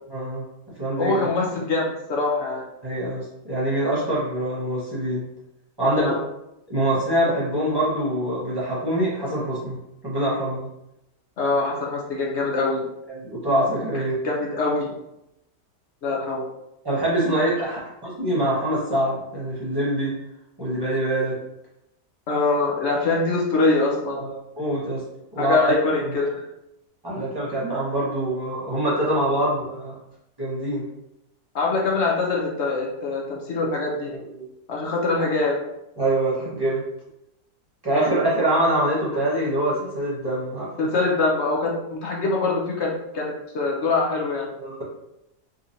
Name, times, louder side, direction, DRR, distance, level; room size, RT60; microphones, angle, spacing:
voice 1, 0.1-0.4 0.8-1.2 2.8-5.2 5.8-6.1 6.7-9.8 10.0-10.7 13.1-14.2 16.8-20.1 20.6-21.3 24.2-25.0 25.3-25.6 26.0-26.1 27.0-30.0 30.4-30.9 33.6-33.7 34.1-34.5 36.0-36.8 37.8-40.9 44.6-44.8, right 1 dB, 15° right, -8 dB, 1.0 m, -24 dB
voice 2, 1.0-2.6 5.9-6.2 11.4-12.8 14.2-14.9 16.0-16.4 17.7-17.8 22.3-24.2 25.4-26.4 31.5-34.1 34.7-35.6 37.9-38.2 40.8-44.5, left 3 dB, 60° left, -2 dB, 0.8 m, -24 dB
3.7 x 2.9 x 2.7 m, 0.87 s
omnidirectional pair, 1.8 m